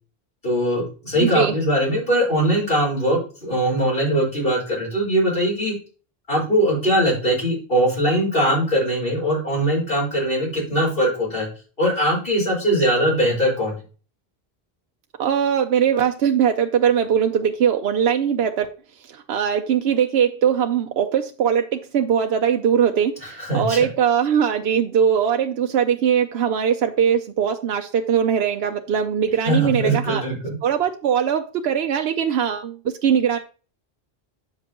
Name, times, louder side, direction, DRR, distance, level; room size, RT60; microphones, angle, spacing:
voice 1, 0.4-5.7 6.3-11.5 11.8-13.8 23.2-23.9 29.4-30.5, equal, 65° left, -4 dB, 5.0 m, -21 dB
voice 2, 1.2-1.5 15.2-18.7 19.1-30.2 30.6-33.4, right 8 dB, 80° right, 5 dB, 0.9 m, -21 dB
8.4 x 7.5 x 2.9 m, 0.36 s
omnidirectional pair, 1.0 m